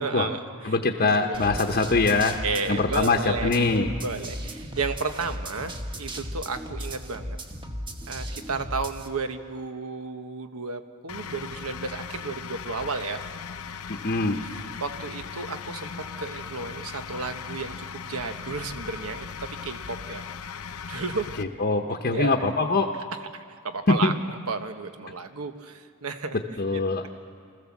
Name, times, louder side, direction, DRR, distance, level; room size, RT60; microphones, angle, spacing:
voice 1, 0.0-1.5 2.4-3.5 4.0-7.4 8.1-13.2 14.4-15.9 16.2-20.2 20.9-21.3 22.1-22.4 23.3-26.4 26.7-27.1, right 4 dB, 80° right, 8 dB, 1.3 m, -33 dB
voice 2, 0.6-2.3 2.7-3.9 13.9-14.4 21.4-22.9 23.9-24.1 26.6-27.1, left 3 dB, 45° left, 3 dB, 0.9 m, -23 dB
sound 1, 1.3-9.1, equal, 20° right, 1.4 m, -36 dB
sound 2, 11.1-21.4, left 6 dB, 80° left, 0.8 m, -38 dB
25.0 x 15.5 x 7.3 m, 2.2 s
head